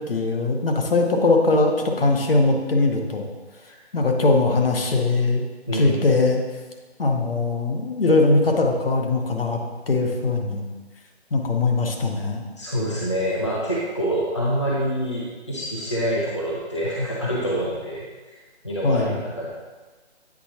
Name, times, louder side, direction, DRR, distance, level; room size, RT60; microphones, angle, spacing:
voice 1, 0.0-3.3 3.9-5.4 5.7-6.4 7.0-9.6 9.9-10.7 11.3-12.4 18.8-19.2, left 3 dB, 55° left, 2 dB, 0.9 m, -21 dB
voice 2, 5.7-6.1 12.6-18.4 18.6-19.5, equal, 25° left, -5 dB, 0.5 m, -26 dB
8.4 x 4.5 x 2.8 m, 1.3 s
hypercardioid pair, 175°, 34 cm